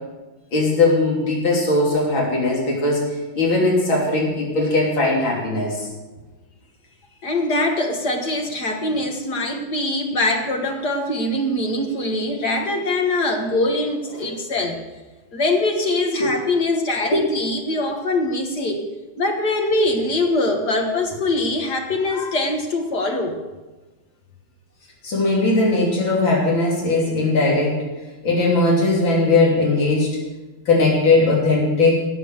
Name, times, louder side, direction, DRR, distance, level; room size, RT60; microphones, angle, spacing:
voice 1, 0.5-3.1 3.3-5.9 16.2-16.3 17.1-17.2 25.0-27.8 28.2-30.2 30.7-31.9, left 2 dB, 85° left, -3 dB, 4.0 m, -19 dB
voice 2, 7.2-14.8 15.3-18.8 19.2-23.4, left 2 dB, 60° left, 2 dB, 2.1 m, -23 dB
17.5 x 7.2 x 7.8 m, 1.2 s
omnidirectional pair, 2.1 m